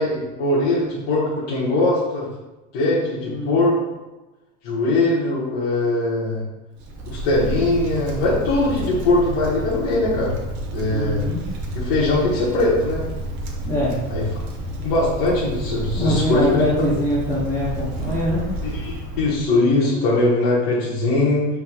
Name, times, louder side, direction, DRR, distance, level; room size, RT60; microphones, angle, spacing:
voice 1, 0.0-2.3 2.7-3.8 4.6-6.4 7.1-10.3 10.7-11.3 11.7-13.0 14.1-14.2 14.8-16.6 18.6-21.5, left 2 dB, 50° left, -7 dB, 1.1 m, -21 dB
voice 2, 3.3-3.6 10.9-11.4 13.6-14.0 16.0-18.5, equal, 10° left, -10 dB, 0.6 m, -23 dB
Wind, 6.7-19.6, right 1 dB, 30° right, 0.5 m, -30 dB
5.8 x 3.5 x 2.2 m, 1.1 s
supercardioid pair, 180°, 37 cm